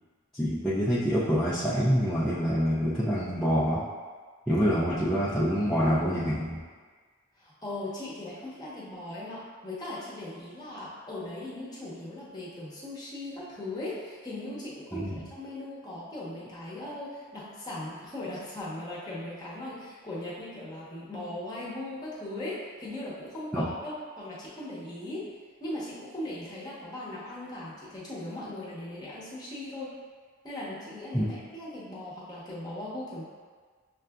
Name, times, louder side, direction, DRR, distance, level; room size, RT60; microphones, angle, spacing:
voice 1, 0.3-3.8 4.5-6.6 14.9-15.2 23.5-23.7 31.1-31.3, equal, ahead, -11 dB, 0.4 m, -26 dB
voice 2, 4.6-5.0 7.4-25.3 25.6-29.9 30.4-33.2, left 1 dB, 20° left, -8 dB, 0.9 m, -39 dB
6.5 x 2.4 x 2.3 m, 1.5 s
head